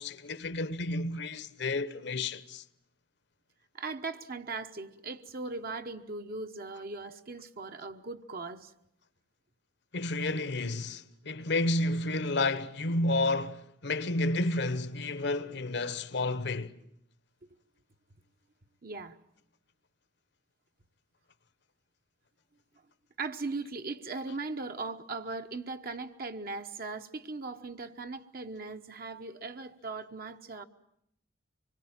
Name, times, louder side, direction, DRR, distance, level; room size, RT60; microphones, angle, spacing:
voice 1, 0.0-2.6 9.9-16.7, left 2 dB, 65° left, 1.0 m, -31 dB
voice 2, 3.7-8.7 18.8-19.2 23.2-30.7, right 3 dB, 50° right, 1.1 m, -39 dB
25.5 x 22.0 x 8.9 m
head